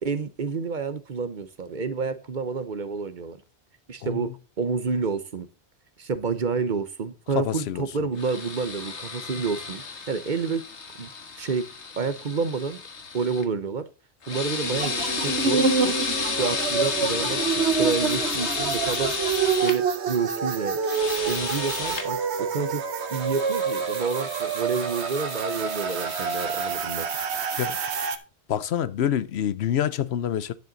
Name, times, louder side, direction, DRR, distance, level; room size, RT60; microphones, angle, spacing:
voice 1, 0.0-3.4 3.9-5.5 6.0-10.6 11.0-11.1 11.4-11.7 12.0-12.8 13.1-13.9 14.3-16.0 16.4-19.1 19.6-20.8 21.3-22.8 23.1-27.1, right 5 dB, 50° right, 0.9 m, -29 dB
voice 2, 7.4-7.9 27.6-27.8 28.5-30.5, left 10 dB, 75° left, 0.9 m, -26 dB
sound 1, 8.2-13.4 14.2-19.8 20.8-22.1 23.1-26.8, left 4 dB, 90° left, 1.7 m, -32 dB
sound 2, 14.6-28.2, right 6 dB, 75° right, 1.2 m, -27 dB
10.5 x 7.5 x 3.9 m
omnidirectional pair, 1.1 m